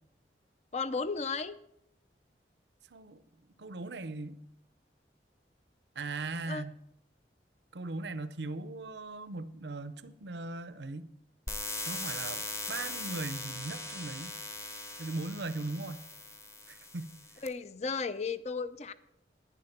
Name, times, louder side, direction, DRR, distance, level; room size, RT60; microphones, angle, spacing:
voice 1, 0.7-1.6 6.5-6.7 17.4-18.9, left 4 dB, 40° left, 14 dB, 0.5 m, -34 dB
voice 2, 2.9-3.2 3.6-4.4 6.0-6.7 7.7-11.1 11.9-14.4 15.0-16.1 16.7-17.1, right 2 dB, 80° right, 14 dB, 0.7 m, -39 dB
sound 1, 11.5-17.5, left 2 dB, 15° left, 0.9 m, -40 dB
11.0 x 9.9 x 5.9 m, 0.79 s
head